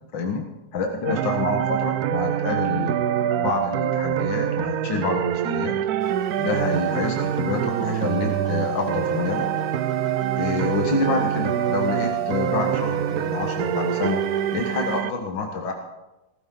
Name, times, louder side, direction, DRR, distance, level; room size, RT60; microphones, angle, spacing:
voice 1, 0.1-0.5 0.7-3.1 3.4-5.8 6.4-9.5 10.4-14.2 14.5-15.7, left 4 dB, 70° left, 2 dB, 2.1 m, -27 dB
sound 1, 1.1-15.1, right 10 dB, 70° right, 0.9 m, -25 dB
sound 2, 6.0-15.0, left 5 dB, 30° right, 2.6 m, -40 dB
19.5 x 14.5 x 3.8 m, 1.0 s
omnidirectional pair, 2.2 m